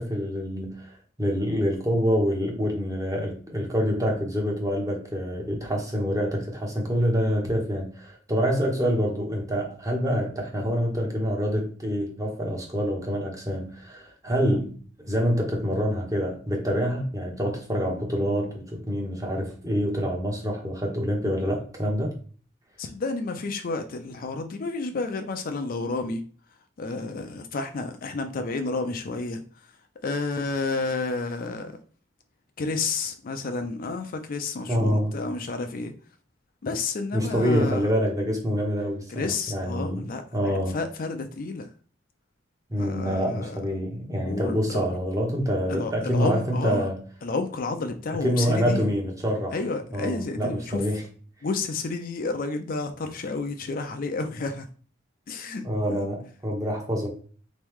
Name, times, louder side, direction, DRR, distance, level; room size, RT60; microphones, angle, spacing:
voice 1, 0.0-14.8 15.0-22.1 34.7-35.2 37.1-40.1 40.3-40.8 42.7-46.9 48.2-49.5 49.9-51.0 55.6-57.1, equal, 20° right, 1.0 m, -26 dB
voice 2, 22.8-26.2 26.8-29.7 30.0-31.8 32.6-35.9 36.6-37.9 39.1-41.7 42.8-43.6 44.2-44.8 45.7-46.9 47.2-48.9 49.5-50.8 51.4-54.7 55.3-56.1, left 3 dB, 50° left, 0.4 m, -31 dB
3.6 x 3.1 x 3.5 m
head